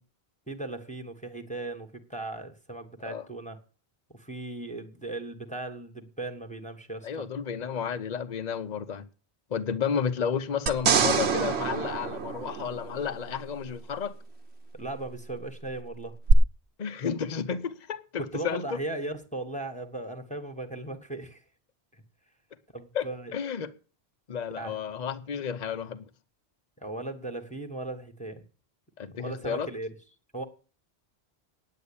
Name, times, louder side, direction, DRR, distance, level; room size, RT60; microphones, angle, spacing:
voice 1, 0.5-3.6 4.1-7.3 14.7-16.2 18.2-21.4 21.9-22.0 22.7-23.3 24.5-24.8 26.8-28.4 29.1-29.9 30.3-30.4, right 2 dB, 5° left, 1.4 m, -37 dB
voice 2, 7.0-9.0 9.5-14.1 16.8-18.8 22.9-23.1 23.3-23.7 24.3-26.0 29.0-29.7, left 7 dB, 45° left, 0.9 m, -32 dB
sound 1, 10.7-13.2 16.3-16.4, right 6 dB, 80° right, 1.2 m, -25 dB
9.3 x 8.5 x 8.6 m
omnidirectional pair, 1.1 m